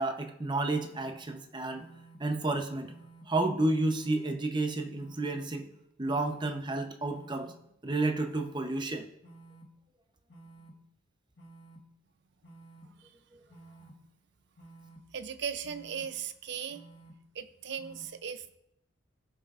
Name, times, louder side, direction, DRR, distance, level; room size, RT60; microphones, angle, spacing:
voice 1, 0.0-1.9 2.2-2.9 3.3-5.7 6.0-7.5 7.8-9.0, right 2 dB, 25° right, 5 dB, 0.7 m, -31 dB
sound 1, 0.7-1.1 1.8-2.2 2.8-3.2 3.9-4.3 5.0-5.4 6.0-6.4 7.1-7.5 8.2-8.6 9.2-9.6 10.3-10.7 11.4-11.8 12.4-12.8 13.5-13.9 14.6-15.0 15.6-16.0 16.7-17.1 17.8-18.0, right 2 dB, 65° left, 1.4 m, -53 dB
voice 2, 15.1-16.8 17.3-18.6, right 7 dB, 60° right, 11 dB, 0.5 m, -38 dB
16.5 x 5.6 x 2.5 m, 0.80 s
head